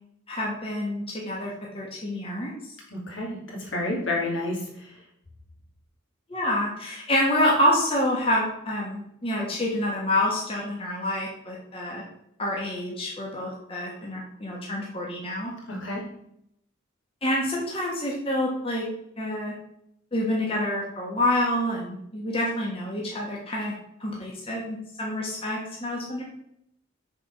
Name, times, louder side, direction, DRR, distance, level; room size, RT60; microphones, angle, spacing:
voice 1, 0.3-2.7 6.3-12.0 12.4-15.5 17.2-18.9 19.2-19.5 20.1-23.7 24.0-26.2, left 1 dB, 30° left, -3 dB, 1.3 m, -27 dB
voice 2, 2.9-5.0 15.7-16.0, left 2 dB, 65° left, -2 dB, 2.7 m, -30 dB
6.8 x 4.2 x 5.9 m, 0.76 s
head